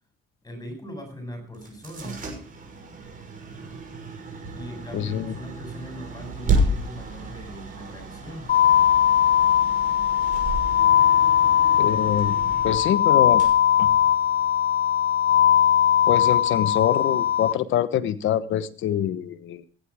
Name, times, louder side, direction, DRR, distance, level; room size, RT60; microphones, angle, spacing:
voice 1, 0.4-2.3 4.5-8.6, equal, 20° left, 6 dB, 7.4 m, -39 dB
sound 1, 1.5-14.5, right 2 dB, 45° right, 6.2 m, -32 dB
voice 2, 4.9-5.3 11.8-12.4 12.6-13.4 13.8-13.9 16.1-19.7, left 10 dB, 80° left, 13 dB, 1.2 m, -25 dB
sound 2, 8.5-17.5, left 10 dB, 45° left, 0.6 m, -20 dB
16.5 x 10.5 x 4.8 m, 0.41 s
cardioid pair, 90°, 20 cm